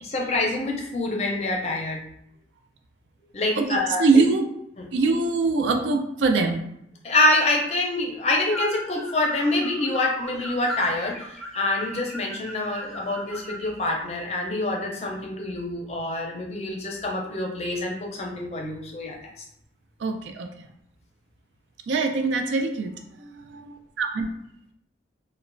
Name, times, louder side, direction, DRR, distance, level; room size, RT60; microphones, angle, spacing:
voice 1, 0.0-2.0 3.3-4.0 4.8-4.9 7.0-19.4, left 2 dB, 35° left, 0 dB, 0.5 m, -26 dB
voice 2, 4.0-4.5 4.9-6.6 20.0-20.5 21.9-22.9 23.2-23.3 24.0-24.3, right 3 dB, 90° right, 5 dB, 0.4 m, -22 dB
sound 1, 8.4-13.8, equal, ahead, 0.7 m, -37 dB
2.9 x 2.1 x 2.5 m, 0.75 s
head